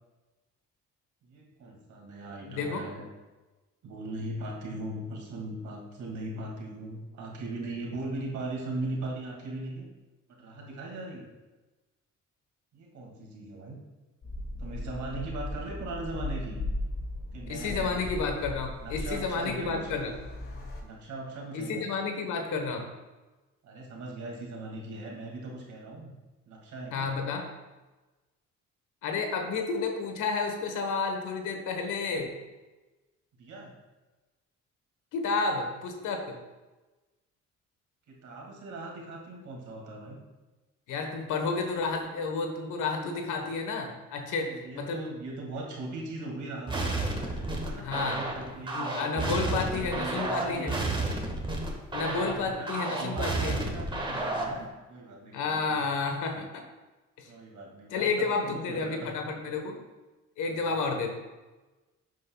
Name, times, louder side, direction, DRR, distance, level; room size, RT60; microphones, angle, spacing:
voice 1, 1.2-3.0 3.8-9.9 10.4-11.3 12.7-13.8 14.6-16.6 17.3-18.1 18.8-19.8 20.8-21.9 23.6-26.1 26.5-27.2 33.4-33.7 38.1-40.2 44.4-51.1 51.9-55.8 57.3-59.1 60.5-60.6, right 2 dB, 70° right, -1 dB, 2.4 m, -39 dB
voice 2, 2.5-2.8 17.5-20.1 21.5-22.8 26.9-27.5 29.0-32.3 35.1-36.3 40.9-44.5 44.7-45.0 47.8-48.2 48.7-50.7 51.9-53.6 55.3-56.6 57.2-57.3 57.9-59.8 60.4-61.1, left 4 dB, 85° left, 3 dB, 1.3 m, -31 dB
sound 1, 14.2-20.8, left 1 dB, 45° left, 2.1 m, -37 dB
sound 2, 46.7-54.6, right 2 dB, 15° right, 1.6 m, -31 dB
12.0 x 7.5 x 2.3 m, 1.2 s
cardioid pair, 90°, 30 cm